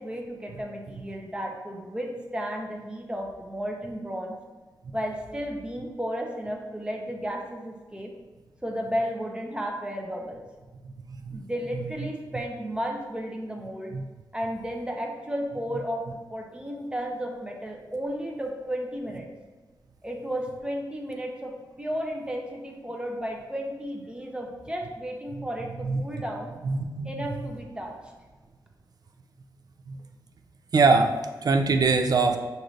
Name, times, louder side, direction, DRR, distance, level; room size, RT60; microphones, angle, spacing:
voice 1, 0.0-4.3 4.9-8.1 8.6-10.4 11.3-13.9 14.3-16.0 16.3-19.3 20.0-26.5 27.0-28.1, equal, 10° right, 1 dB, 0.6 m, -33 dB
voice 2, 10.8-11.4 13.9-14.0 25.8-26.2 26.6-27.1 29.9-30.0 30.7-32.4, right 4 dB, 55° right, 5 dB, 0.4 m, -23 dB
6.4 x 2.6 x 3.1 m, 1.3 s
wide cardioid pair, 100°, 8 cm